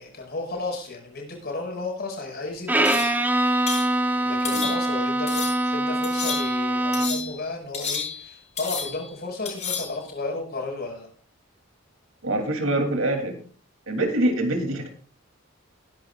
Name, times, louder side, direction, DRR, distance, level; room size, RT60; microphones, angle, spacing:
voice 1, 0.0-3.0 4.2-11.1, left 3 dB, 55° left, 1 dB, 5.7 m, -33 dB
Bowed string instrument, 2.7-7.4, right 1 dB, 10° right, 1.0 m, -24 dB
sound 1, 2.8-3.2 3.7-3.9 4.4-5.0 5.3-5.7 6.0-6.6 6.9-7.4 7.7-8.3 8.6-9.1 9.4-10.0, left 6 dB, 35° left, 5.5 m, -31 dB
voice 2, 12.2-13.4 13.9-14.9, right 1 dB, 80° right, 4 dB, 3.1 m, -24 dB
20.5 x 11.0 x 2.5 m, 0.42 s
head